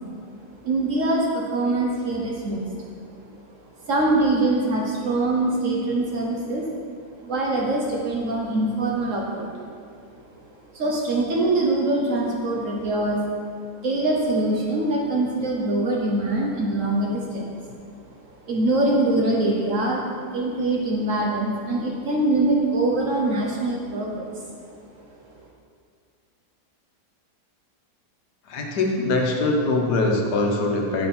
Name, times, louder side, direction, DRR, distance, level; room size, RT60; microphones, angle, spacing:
voice 1, 0.6-3.0 3.8-6.7 7.2-9.7 10.7-13.3 13.8-17.5 18.4-20.0 20.3-24.5, right 2 dB, 55° right, -2 dB, 1.0 m, -23 dB
voice 2, 28.5-31.1, left 2 dB, 70° left, 1 dB, 1.3 m, -22 dB
6.6 x 5.4 x 4.2 m, 2.2 s
omnidirectional pair, 1.8 m